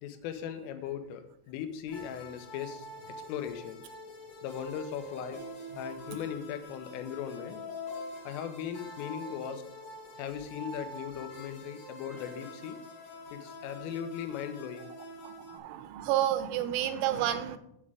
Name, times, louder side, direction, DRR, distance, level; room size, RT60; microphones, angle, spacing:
voice 1, 0.0-3.8 4.4-5.4 5.8-7.6 8.3-9.6 10.2-12.8 13.3-14.9, left 9 dB, 90° left, 8 dB, 3.5 m, -38 dB
sound 1, 1.9-15.6, left 1 dB, 55° left, 1.5 m, -45 dB
voice 2, 15.2-17.6, right 11 dB, 85° right, 10 dB, 3.2 m, -30 dB
8.2 x 7.4 x 4.9 m, 0.75 s
omnidirectional pair, 5.7 m